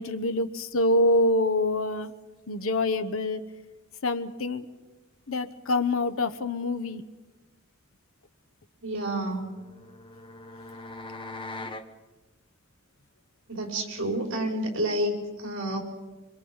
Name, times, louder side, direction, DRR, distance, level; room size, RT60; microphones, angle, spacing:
voice 1, 0.0-2.1 2.5-3.4 4.0-4.7 5.3-7.0, left 2 dB, 70° left, 11 dB, 1.1 m, -25 dB
voice 2, 8.8-9.6 13.5-15.8, right 1 dB, 60° right, 1 dB, 5.7 m, -29 dB
sound 1, 9.3-11.9, left 2 dB, 25° left, 1.0 m, -41 dB
26.5 x 26.0 x 5.6 m, 1.2 s
head